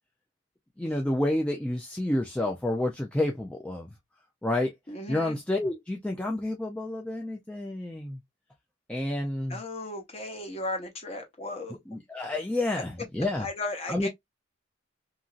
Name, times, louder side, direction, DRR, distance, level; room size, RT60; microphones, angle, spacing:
voice 1, 0.8-3.9 4.4-4.7 5.1-8.2 8.9-9.6 11.9-13.5 13.9-14.1, left 1 dB, 5° left, 0.3 m, -29 dB
voice 2, 4.9-5.4 9.5-11.8 13.4-14.1, left 2 dB, 30° left, 0.8 m, -35 dB
2.9 x 2.5 x 2.4 m
head